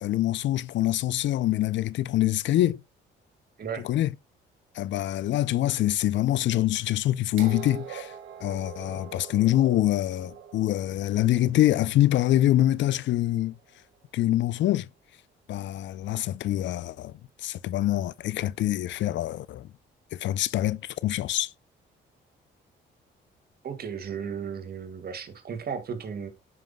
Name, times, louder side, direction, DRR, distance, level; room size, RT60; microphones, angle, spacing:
voice 1, 0.0-2.8 3.8-4.1 4.7-8.1 8.4-13.5 14.1-14.9 15.5-17.1 17.4-19.7 20.1-21.5, left 14 dB, 65° left, 0.4 m, -25 dB
sound 1, 7.4-13.2 14.3-14.4, right 8 dB, 80° right, 1.5 m, -44 dB
voice 2, 23.6-26.3, right 7 dB, 50° right, 1.8 m, -35 dB
9.3 x 5.6 x 2.2 m
cardioid pair, 90°, 20 cm